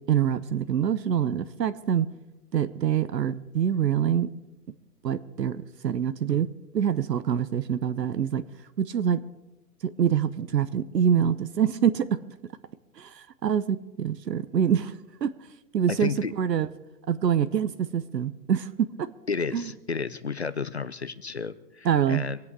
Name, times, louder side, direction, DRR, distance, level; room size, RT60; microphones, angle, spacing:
voice 1, 0.1-2.1 2.5-4.3 5.0-6.5 6.7-8.4 8.8-9.2 9.8-12.1 13.0-15.3 15.7-16.7 17.1-19.1 19.5-19.7 21.8-22.2, right 8 dB, 75° right, 13 dB, 0.9 m, -25 dB
voice 2, 16.0-16.3 19.3-22.4, left 5 dB, 45° left, 15 dB, 0.5 m, -32 dB
25.0 x 8.4 x 4.8 m, 1.0 s
hypercardioid pair, 170°, 50 cm